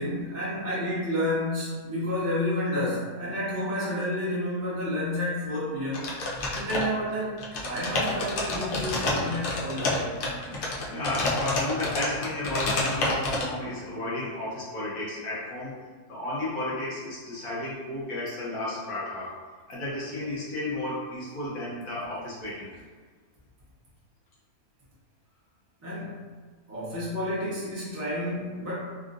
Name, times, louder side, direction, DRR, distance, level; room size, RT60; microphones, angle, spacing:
voice 1, 0.0-6.1 6.5-10.1 25.8-26.1 26.7-28.7, left 1 dB, 15° right, -10 dB, 0.6 m, -30 dB
sound 1, 5.9-7.1 7.4-13.4, left 2 dB, 80° left, 0.4 m, -29 dB
voice 2, 8.8-9.2 10.9-19.4 19.7-22.7, left 1 dB, 65° left, -7 dB, 1.3 m, -33 dB
3.5 x 2.4 x 2.5 m, 1.5 s
omnidirectional pair, 1.6 m